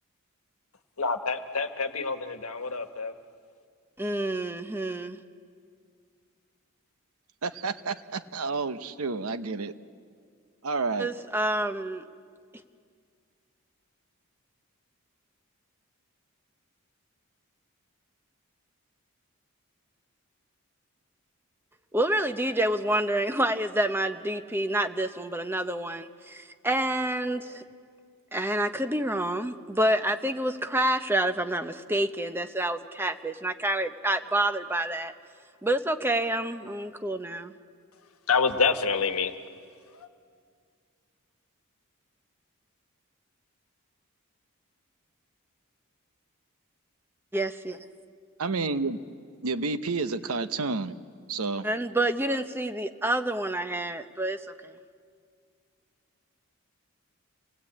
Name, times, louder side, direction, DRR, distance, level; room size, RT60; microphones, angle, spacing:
voice 1, 1.0-3.1 38.3-39.3 39.9-40.1, left 5 dB, 75° left, 7 dB, 1.3 m, -27 dB
voice 2, 4.0-5.2 11.0-12.0 21.9-27.6 28.3-35.1 35.6-37.5 47.3-47.8 51.6-54.7, right 1 dB, 10° right, 8 dB, 0.8 m, -28 dB
voice 3, 7.4-9.7 10.6-11.1 48.4-49.0 49.4-50.9 51.3-51.6, right 3 dB, 80° right, 11 dB, 0.9 m, -30 dB
28.0 x 19.0 x 8.5 m, 2.1 s
head